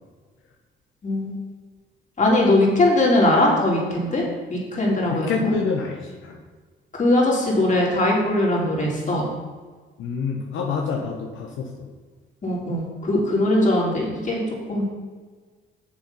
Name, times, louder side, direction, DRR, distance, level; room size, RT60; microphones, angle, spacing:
voice 1, 2.2-4.2 4.5-5.5 7.0-9.2 12.4-14.4 14.7-14.8, left 1 dB, 40° left, -3 dB, 3.1 m, -20 dB
voice 2, 5.1-6.4 10.0-11.7, left 5 dB, 75° left, 1 dB, 1.1 m, -27 dB
7.2 x 7.1 x 5.5 m, 1.5 s
cardioid pair, 90°, 20 cm